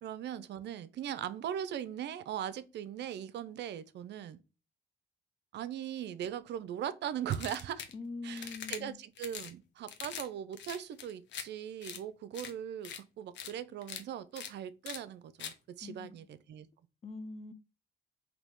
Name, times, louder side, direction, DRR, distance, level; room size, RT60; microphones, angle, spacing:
voice 1, 0.0-4.4 5.5-7.8 8.2-16.7, right 10 dB, 65° right, 0.5 m, -40 dB
sound 1, 7.3-7.9 8.4-8.8 9.2-9.5 9.9-10.3 10.5-11.4 11.8-12.0 12.3-12.5 12.8-13.0 13.3-13.5 13.8-14.0 14.4-14.5 14.9-15.0 15.4-15.5, left 8 dB, 70° left, 0.7 m, -42 dB
voice 2, 7.9-9.0 15.8-16.3 17.0-17.5, left 3 dB, 35° left, 0.6 m, -43 dB
3.9 x 2.8 x 3.5 m
cardioid pair, 80°, 19 cm